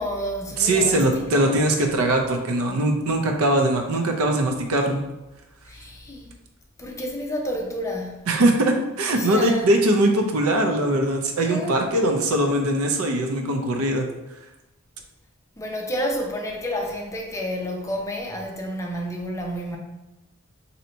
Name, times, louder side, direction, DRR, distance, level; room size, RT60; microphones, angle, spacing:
voice 1, 0.0-1.6 5.7-6.3 6.8-8.2 9.1-9.7 11.4-11.8 15.6-19.8, equal, 15° left, 0.5 m, -30 dB
voice 2, 0.6-5.0 8.3-14.1, right 1 dB, 80° right, 0.6 m, -21 dB
2.8 x 2.7 x 4.3 m
head